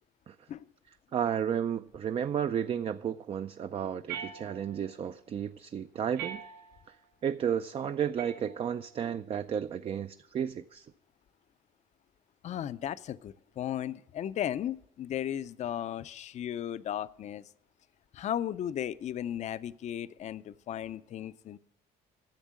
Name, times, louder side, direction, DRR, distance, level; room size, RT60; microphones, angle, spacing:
voice 1, 1.1-6.4 7.2-10.9, right 8 dB, 35° right, 0.4 m, -32 dB
sound 1, 4.1-5.0 6.2-7.0 8.2-9.0, right 8 dB, 85° right, 2.1 m, -43 dB
voice 2, 12.4-17.4 18.1-21.6, left 10 dB, 45° left, 0.4 m, -35 dB
10.5 x 7.2 x 7.3 m
cardioid pair, 110°, 17 cm